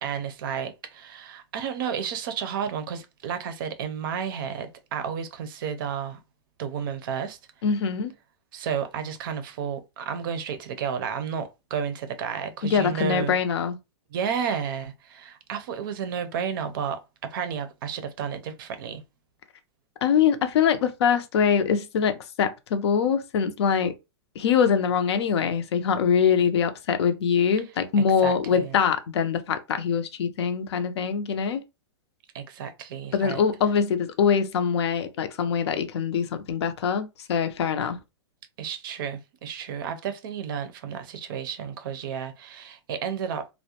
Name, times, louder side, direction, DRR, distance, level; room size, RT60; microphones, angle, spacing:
voice 1, 0.0-6.2 6.6-7.4 8.5-13.4 14.1-19.0 28.0-28.8 32.3-33.4 38.6-43.5, right 7 dB, 50° right, 0.5 m, -32 dB
voice 2, 7.6-8.1 12.7-13.8 20.0-23.9 24.4-31.6 33.1-38.0, left 7 dB, 75° left, 0.5 m, -23 dB
2.4 x 2.1 x 2.8 m
hypercardioid pair, 155°, 14 cm